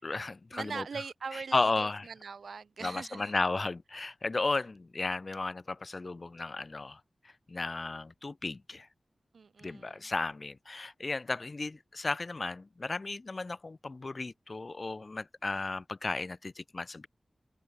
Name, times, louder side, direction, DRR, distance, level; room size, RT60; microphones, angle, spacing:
voice 1, 0.0-0.9 1.3-2.1 2.8-8.9 9.6-17.1, left 3 dB, 50° left, 6.9 m, -34 dB
voice 2, 0.5-3.3 9.3-10.1, right 5 dB, 85° right, 8.0 m, -41 dB
open air
cardioid pair, 45°, 0 cm